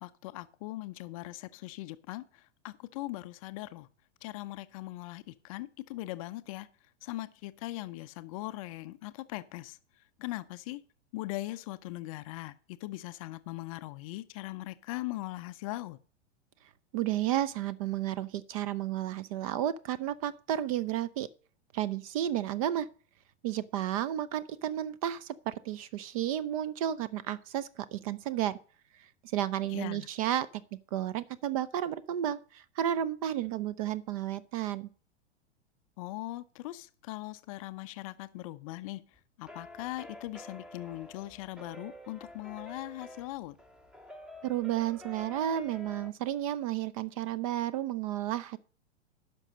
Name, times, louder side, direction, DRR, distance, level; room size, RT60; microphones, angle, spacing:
voice 1, 0.0-3.9 4.2-6.7 7.0-10.8 11.1-16.0 29.7-30.1 36.0-43.6, left 18 dB, 30° left, 0.5 m, -40 dB
voice 2, 16.9-21.3 21.7-22.9 23.4-28.6 29.3-30.5 30.9-34.9 44.4-48.6, right 11 dB, 30° right, 0.4 m, -32 dB
sound 1, 39.1-46.1, left 1 dB, ahead, 0.8 m, -49 dB
9.7 x 6.0 x 6.4 m
figure-of-eight pair, 95°, 36 cm